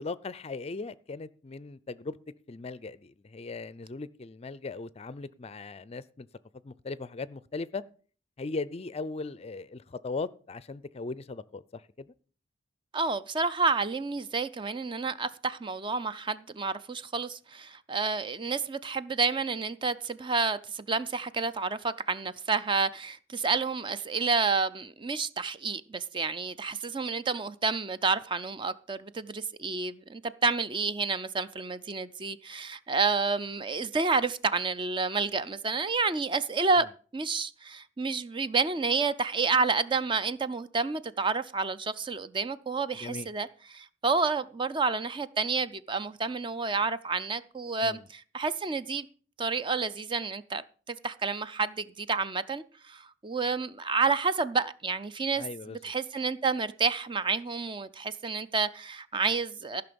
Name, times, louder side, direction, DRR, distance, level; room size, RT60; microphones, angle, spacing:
voice 1, 0.0-2.2 2.5-6.3 6.6-7.8 8.4-12.1 43.0-43.3 47.8-48.0 55.4-55.8, left 3 dB, 35° left, 0.4 m, -38 dB
voice 2, 12.9-36.9 37.1-49.1 49.4-59.8, right 4 dB, 25° right, 0.5 m, -30 dB
14.5 x 5.8 x 6.9 m
head